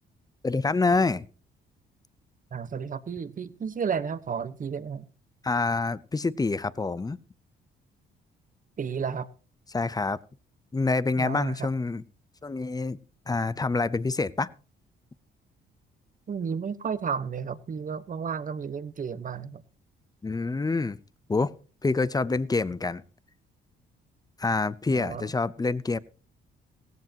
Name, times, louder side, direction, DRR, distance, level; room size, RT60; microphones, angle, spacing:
voice 1, 0.4-1.3 5.4-7.2 9.7-10.2 10.7-12.0 12.4-13.0 13.3-14.5 20.2-21.0 21.3-21.5 21.8-23.0 24.4-26.0, left 3 dB, 20° left, 18 dB, 0.7 m, -26 dB
voice 2, 2.5-5.1 8.8-9.3 11.2-11.7 16.3-19.6 24.9-25.3, right 6 dB, 40° right, 14 dB, 1.1 m, -32 dB
17.0 x 15.0 x 2.9 m, 0.36 s
cardioid pair, 90°, 20 cm